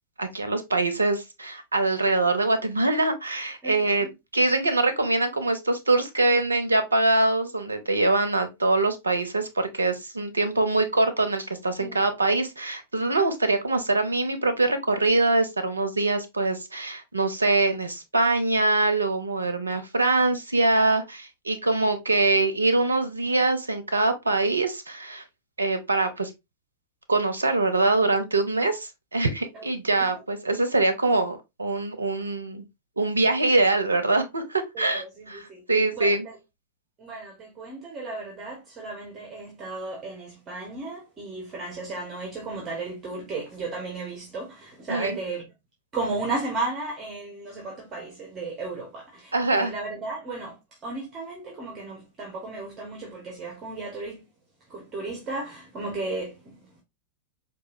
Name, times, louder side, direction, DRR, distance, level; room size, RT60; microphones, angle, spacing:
voice 1, 0.2-4.1 4.3-25.2 25.6-26.3 27.1-32.6 33.0-35.0 35.3-35.4 35.7-36.2 44.9-45.2 49.3-49.7, right 2 dB, 90° right, 0.8 m, -23 dB
voice 2, 3.6-4.1 11.8-12.1 29.5-30.1 34.7-35.6 35.9-36.4 37.0-45.5 45.9-54.2 54.7-56.8, right 3 dB, 30° right, 1.4 m, -35 dB
4.8 x 2.7 x 2.6 m
figure-of-eight pair, 95°, 0 cm